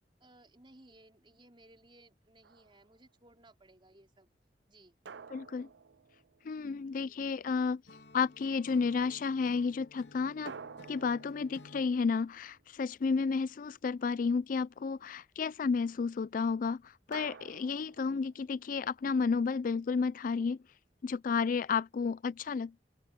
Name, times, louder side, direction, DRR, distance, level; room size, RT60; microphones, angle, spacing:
voice 1, 0.2-4.3 4.7-5.0 6.9-7.2, right 1 dB, 30° right, 4.4 m, -60 dB
sound 1, 2.4-3.0 5.0-6.9 10.4-13.1 17.1-18.8, right 5 dB, 80° right, 0.5 m, -51 dB
voice 2, 5.3-5.7 6.4-7.8 8.1-10.5 10.9-20.6 21.0-22.7, left 5 dB, 50° left, 0.4 m, -32 dB
Acoustic guitar / Strum, 7.9-12.0, left 2 dB, 75° left, 2.9 m, -55 dB
open air
head